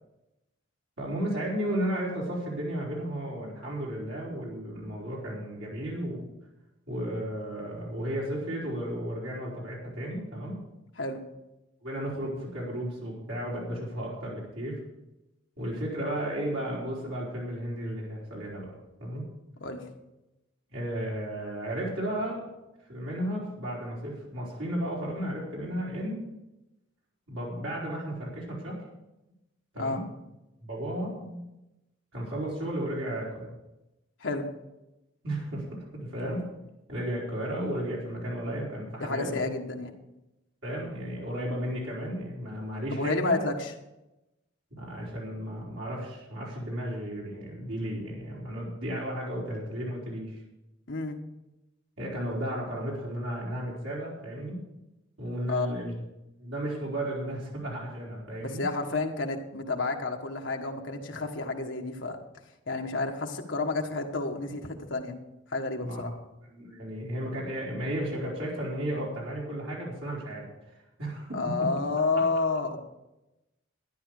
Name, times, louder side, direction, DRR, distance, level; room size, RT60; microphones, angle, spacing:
voice 1, 1.0-6.2 6.9-10.6 11.8-14.8 15.6-18.7 19.0-19.2 20.7-22.4 22.9-26.2 27.3-28.8 29.7-30.0 30.6-31.4 32.1-33.5 35.2-36.5 36.9-39.5 40.6-43.4 44.7-50.4 52.0-54.6 55.2-55.9 56.4-58.6 65.8-66.1 66.5-71.7, right 1 dB, 75° right, -5 dB, 4.6 m, -34 dB
voice 2, 39.0-39.9 42.9-43.7 50.9-51.2 55.5-55.7 58.4-62.2 62.7-65.2 65.5-66.1 71.3-72.9, left 3 dB, 70° left, 2 dB, 1.5 m, -30 dB
12.5 x 10.5 x 4.9 m, 0.96 s
head